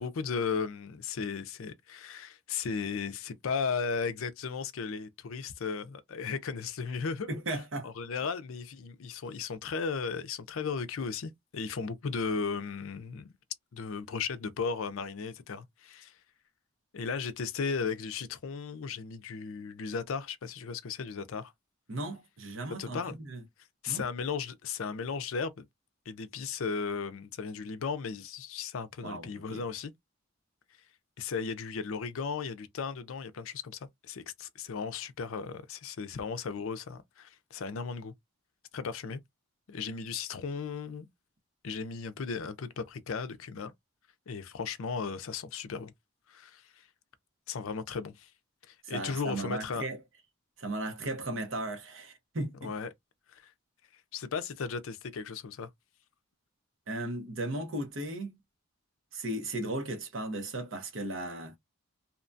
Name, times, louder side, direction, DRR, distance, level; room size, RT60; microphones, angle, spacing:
voice 1, 0.0-7.3 7.8-13.3 13.7-16.2 16.9-21.5 22.8-23.2 23.8-25.6 26.1-29.9 31.2-38.1 38.7-39.2 39.7-41.1 41.6-43.7 44.3-45.9 46.3-46.9 47.5-48.3 48.7-49.9 52.6-52.9 53.3-53.5 54.1-55.7, left 5 dB, 65° left, 0.4 m, -36 dB
voice 2, 7.3-7.9 21.9-23.4 23.9-24.1 29.0-29.6 48.8-50.0 50.6-52.7 56.9-58.4 59.1-61.6, right 1 dB, 60° right, 0.8 m, -36 dB
2.8 x 2.2 x 2.6 m
head